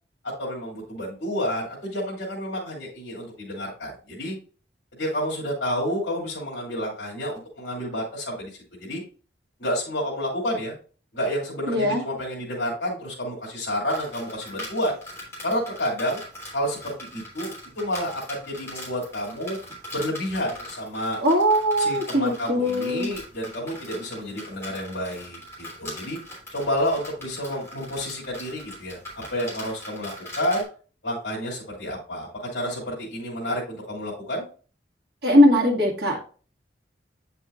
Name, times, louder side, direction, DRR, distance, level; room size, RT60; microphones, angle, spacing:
voice 1, 0.4-4.4 5.0-8.5 8.8-9.0 9.6-10.7 11.1-14.9 15.4-16.2 16.5-19.6 19.9-21.2 21.8-25.4 25.8-26.2 26.5-30.6 31.0-34.4, equal, 65° left, -5 dB, 2.7 m, -29 dB
voice 2, 11.7-12.0 21.2-23.1 35.2-36.2, equal, 60° right, -1 dB, 2.0 m, -20 dB
sound 1, 13.9-30.6, left 1 dB, 15° left, 3.2 m, -41 dB
8.6 x 5.7 x 2.5 m, 0.38 s
head